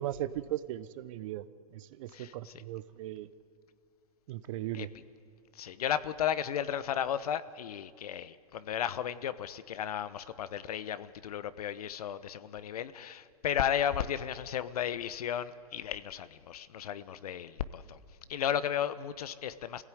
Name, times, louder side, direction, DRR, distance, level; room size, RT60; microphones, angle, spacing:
voice 1, 0.0-1.4 1.7-3.3 4.3-4.9, right 13 dB, 55° right, 15 dB, 0.9 m, -37 dB
voice 2, 2.1-2.5 4.7-4.9 5.5-18.0 18.3-19.8, left 9 dB, 75° left, 15 dB, 1.0 m, -34 dB
25.0 x 16.0 x 9.3 m, 2.3 s
hypercardioid pair, 125°, 19 cm